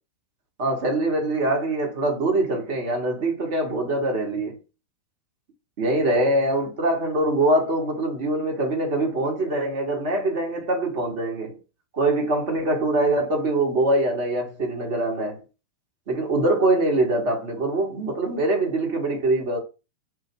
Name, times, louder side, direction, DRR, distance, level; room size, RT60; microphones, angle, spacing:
voice 1, 0.6-4.6 5.8-11.6 11.9-15.4 16.1-19.6, right 2 dB, 50° right, 1.0 m, -23 dB
3.0 x 2.2 x 3.6 m
figure-of-eight pair, 90°, 0 cm